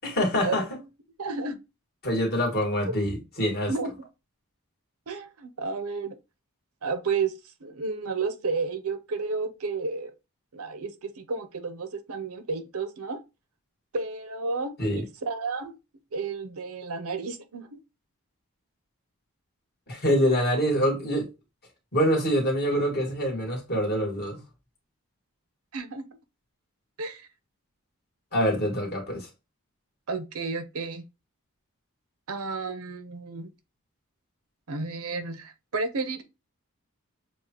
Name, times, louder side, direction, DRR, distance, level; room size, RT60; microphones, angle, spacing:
voice 1, 0.0-0.6 2.0-3.7 14.8-15.0 19.9-21.3 21.9-24.4 28.3-29.3, equal, 45° left, 1.8 m, -25 dB
voice 2, 1.2-1.6 2.9-3.0 3.7-4.1 5.1-6.1 6.8-7.3 7.6-10.1 10.5-13.2 13.9-15.8 16.1-17.8 25.7-26.1 27.0-27.2 30.1-31.0 32.3-33.5 34.7-36.2, right 4 dB, 80° right, 0.8 m, -32 dB
7.0 x 2.4 x 2.9 m
head